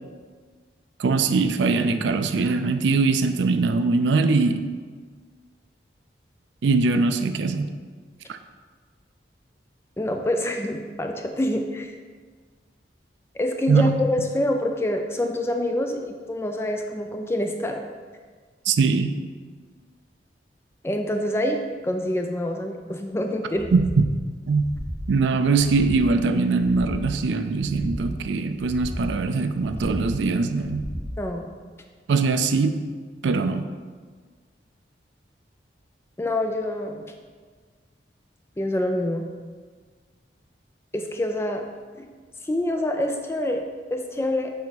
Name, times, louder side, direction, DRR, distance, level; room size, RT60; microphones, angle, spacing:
voice 1, 1.0-4.6 6.6-7.7 8.3-8.4 13.7-14.0 18.7-19.1 23.7-23.8 24.5-24.7 25.1-30.8 32.1-32.8 33.2-33.6, right 4 dB, 75° right, 9 dB, 0.4 m, -22 dB
voice 2, 10.0-11.9 13.3-17.8 20.8-23.7 31.2-31.6 36.2-37.1 38.6-39.2 40.9-41.6 42.0-42.1 42.4-44.5, left 1 dB, 15° left, 4 dB, 0.3 m, -26 dB
sound 1, 23.5-24.0 24.4-25.0 25.5-26.1 26.5-27.1 27.5-28.1 28.5-29.1 29.5-30.1 30.5-31.1, equal, 70° left, 1.9 m, -35 dB
7.1 x 4.7 x 4.0 m, 1.6 s
head